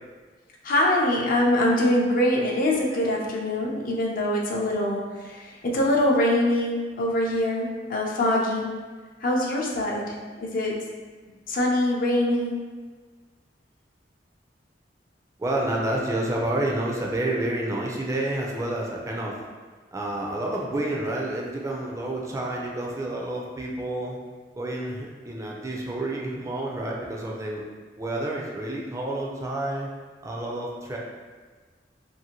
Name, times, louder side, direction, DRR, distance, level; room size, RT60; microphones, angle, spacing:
voice 1, 0.6-8.7 9.2-10.8 11.5-12.6, left 1 dB, 50° left, -1 dB, 0.5 m, -24 dB
voice 2, 15.4-19.4 19.9-24.2 24.6-27.6 28.0-29.9 30.2-31.0, right 1 dB, 15° right, -3 dB, 0.4 m, -29 dB
2.6 x 2.5 x 2.8 m, 1.4 s
head